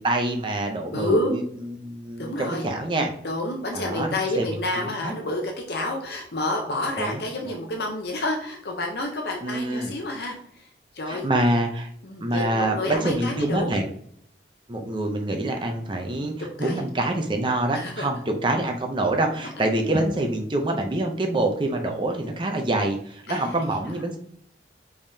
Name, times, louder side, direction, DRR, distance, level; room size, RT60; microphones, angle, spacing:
voice 1, 0.0-3.1 3.7-4.1 4.4-4.5 5.0-5.1 7.0-7.6 9.4-9.9 11.1-11.9 12.2-13.9 14.7-24.2, right 1 dB, 25° right, 3 dB, 0.5 m, -26 dB
voice 2, 0.9-1.3 2.2-2.7 3.2-10.6 10.9-11.3 12.0-13.7 16.6-16.8 17.7-18.1 23.3-23.9, left 1 dB, 60° left, 1 dB, 0.7 m, -29 dB
5.1 x 3.6 x 2.7 m, 0.65 s
head